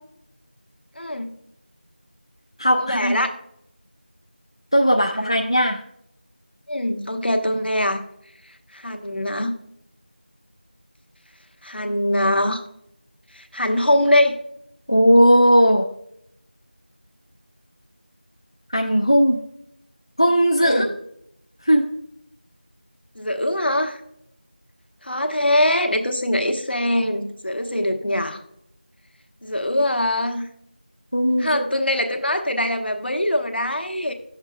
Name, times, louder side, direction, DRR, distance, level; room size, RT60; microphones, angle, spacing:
voice 1, 1.0-1.3 2.8-3.3 5.2-5.3 6.7-8.0 8.7-9.5 11.6-12.6 13.3-14.4 20.6-20.8 23.2-24.0 25.0-28.4 29.4-30.5 31.4-34.1, left 1 dB, 70° left, 5 dB, 1.0 m, -22 dB
voice 2, 2.6-3.2 4.7-5.8 14.9-15.8 18.7-19.4 20.2-20.9 21.6-21.8 31.1-31.8, equal, 30° left, 2 dB, 0.3 m, -17 dB
9.4 x 7.1 x 2.2 m, 0.74 s
figure-of-eight pair, 175°, 6 cm